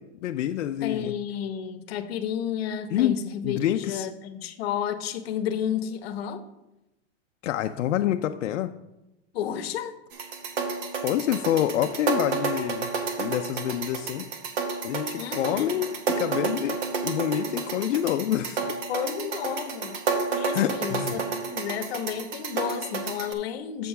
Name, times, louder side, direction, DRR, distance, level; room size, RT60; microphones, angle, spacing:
voice 1, 0.0-1.1 2.9-4.1 7.4-8.7 11.0-12.9 13.2-14.3 14.8-18.7 20.5-21.2, left 11 dB, 85° left, 7 dB, 0.5 m, -27 dB
voice 2, 0.8-6.4 9.3-10.0 15.2-15.8 18.9-20.0 20.4-23.9, left 9 dB, 55° left, 10 dB, 0.8 m, -32 dB
sound 1, 10.1-23.3, right 4 dB, 45° right, 1.0 m, -31 dB
7.5 x 4.6 x 5.5 m, 0.95 s
supercardioid pair, 150°, 36 cm